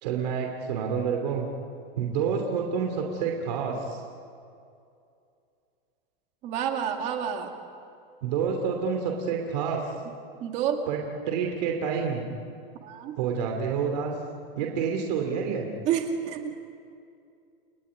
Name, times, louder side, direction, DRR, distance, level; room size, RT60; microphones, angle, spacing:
voice 1, 0.0-1.5 2.0-4.0 8.2-9.8 10.9-11.0 11.3-12.3 13.2-14.1 14.6-15.7, right 6 dB, 45° right, 2 dB, 2.8 m, -28 dB
voice 2, 6.4-7.5 10.4-10.8 12.8-13.2 15.8-16.6, right 9 dB, 25° right, 4 dB, 2.1 m, -29 dB
30.0 x 19.0 x 9.6 m, 2.5 s
supercardioid pair, 180°, 30 cm